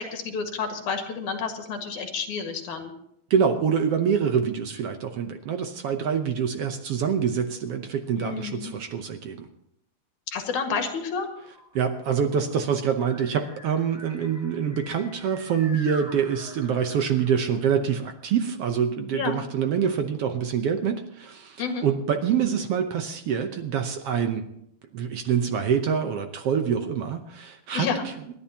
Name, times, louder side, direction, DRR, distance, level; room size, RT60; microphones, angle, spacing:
voice 1, 0.0-2.9 8.1-8.7 10.3-11.3 19.1-19.4 21.6-21.9 27.7-28.0, left 5 dB, 75° left, 4 dB, 3.2 m, -30 dB
voice 2, 3.3-9.5 11.7-24.5 24.9-27.9, right 7 dB, 65° right, 6 dB, 1.6 m, -25 dB
sound 1, 10.8-18.4, equal, ahead, 3.8 m, -47 dB
28.5 x 10.5 x 2.9 m, 0.75 s
omnidirectional pair, 3.5 m